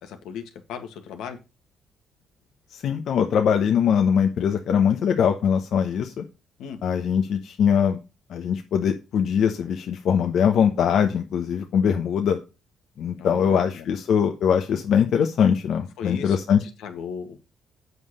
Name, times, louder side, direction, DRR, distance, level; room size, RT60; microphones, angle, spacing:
voice 1, 0.0-1.4 6.6-6.8 13.2-13.9 16.0-16.4 16.6-17.4, left 7 dB, 90° left, 6 dB, 1.7 m, -36 dB
voice 2, 2.7-6.2 6.8-8.0 8.3-12.4 13.0-16.6, left 7 dB, 70° left, 4 dB, 1.1 m, -22 dB
7.9 x 5.5 x 6.5 m, 0.30 s
cardioid pair, 90°, 0 cm